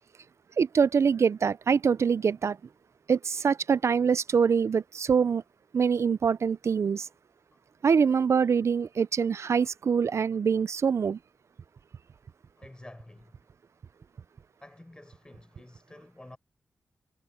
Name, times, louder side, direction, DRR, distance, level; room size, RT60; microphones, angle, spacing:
voice 1, 0.6-2.6 3.1-5.4 5.7-7.1 7.8-11.2, right 6 dB, 60° right, 0.4 m, -24 dB
voice 2, 12.6-13.4 14.6-16.4, left 1 dB, 15° left, 5.1 m, -50 dB
wide cardioid pair, 115°, 5 cm